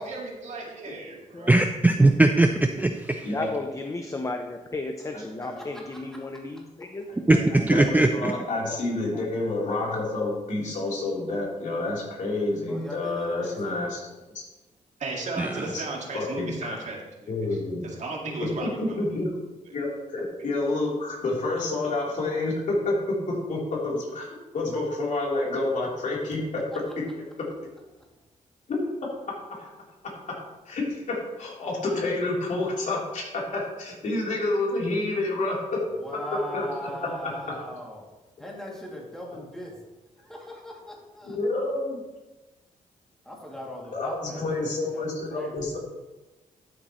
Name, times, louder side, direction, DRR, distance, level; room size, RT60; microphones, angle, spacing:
voice 1, 0.0-1.6 15.0-17.5 17.8-19.0 19.7-19.8 20.4-20.5, right 3 dB, 60° right, -1 dB, 2.1 m, -35 dB
voice 2, 1.5-3.3 7.3-8.3 15.4-15.7, right 2 dB, 10° right, 6 dB, 0.4 m, -20 dB
voice 3, 3.3-7.1 8.7-8.8 9.1-9.3, left 2 dB, 25° left, 5 dB, 0.7 m, -34 dB
voice 4, 7.5-14.1 14.3-14.4 15.6-15.8 16.1-16.8 17.3-17.9 18.6-19.3 19.7-26.6 28.7-28.8 29.5-29.7 30.0-30.1 30.7-35.6 36.5-36.7 37.2-37.3 41.3-42.0 43.9-45.8, left 2 dB, 65° left, -4 dB, 3.6 m, -29 dB
voice 5, 12.7-13.8 36.0-38.0 38.4-39.8 40.2-41.3 43.2-45.5, equal, 5° left, -3 dB, 2.6 m, -39 dB
12.5 x 7.6 x 3.1 m, 1.1 s
cardioid pair, 110°, 14 cm